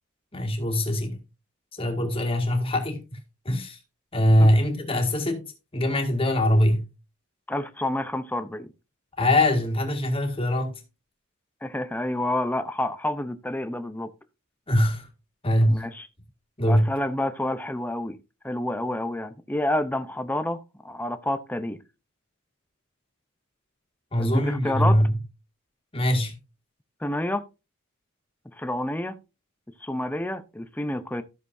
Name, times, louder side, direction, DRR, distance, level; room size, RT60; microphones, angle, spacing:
voice 1, 0.3-1.2 1.8-3.2 3.5-3.8 4.1-5.5 5.7-6.9 9.2-10.8 14.7-15.1 15.4-15.8 16.6-16.9 24.1-25.1 25.9-26.4, left 1 dB, 25° left, 1.9 m, -22 dB
voice 2, 7.5-8.7 11.6-14.1 15.7-16.1 16.7-18.2 18.4-21.8 24.2-25.0 27.0-27.4 28.5-29.2 29.8-31.2, left 1 dB, 10° left, 0.7 m, -29 dB
13.5 x 6.7 x 2.7 m
head